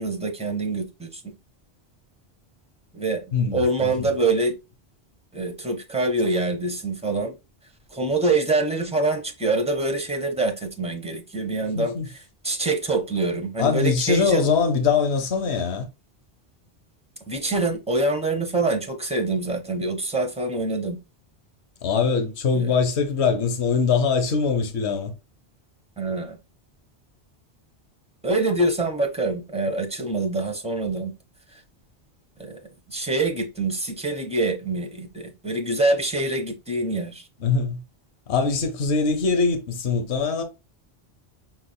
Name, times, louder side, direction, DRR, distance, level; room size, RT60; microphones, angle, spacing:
voice 1, 0.0-1.3 2.9-3.2 3.5-4.6 5.3-7.3 7.9-12.0 12.4-14.5 17.3-21.0 22.5-22.8 26.0-26.4 28.2-31.1 32.4-32.6 32.9-37.3, right 2 dB, 5° right, 0.9 m, -25 dB
voice 2, 3.3-4.1 11.7-12.0 13.6-15.9 21.8-25.1 37.4-37.8 38.3-40.4, left 5 dB, 75° left, 1.2 m, -22 dB
6.0 x 3.6 x 2.2 m
omnidirectional pair, 1.1 m